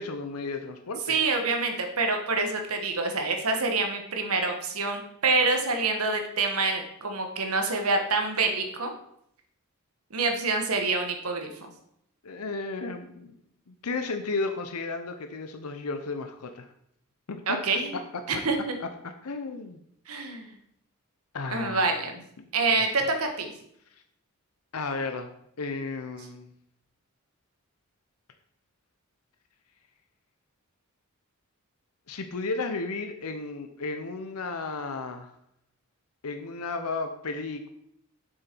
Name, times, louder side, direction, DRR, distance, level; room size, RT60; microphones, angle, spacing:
voice 1, 0.0-1.2 12.2-13.4 13.7-16.7 17.3-17.6 18.8-19.8 21.3-21.8 24.7-25.3 25.6-26.5 32.1-35.3 36.2-37.7, left 3 dB, 85° left, 7 dB, 0.7 m, -33 dB
voice 2, 1.1-8.9 10.1-11.5 17.5-17.9 18.3-18.7 20.1-20.5 21.5-22.2 22.5-23.5, right 3 dB, 75° right, 4 dB, 1.4 m, -26 dB
7.9 x 6.5 x 4.5 m, 0.73 s
head